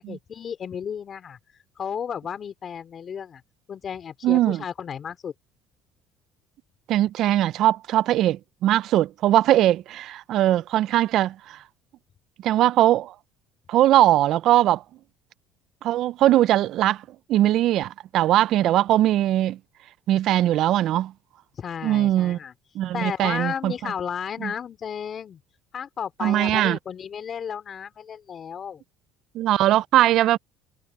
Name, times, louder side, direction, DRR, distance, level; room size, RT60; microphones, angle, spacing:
voice 1, 0.0-1.4 1.8-3.4 3.7-5.3 21.6-22.5 22.9-25.4 25.7-28.8, left 7 dB, 40° left, 3.6 m, -33 dB
voice 2, 4.2-4.6 6.9-11.6 12.4-13.1 13.7-14.8 15.8-17.0 17.3-19.6 20.1-21.1 21.8-22.4 22.8-23.9 24.4-24.5 26.2-26.8 29.3-30.4, right 13 dB, 60° right, 0.4 m, -20 dB
supercardioid pair, 105°, 0 cm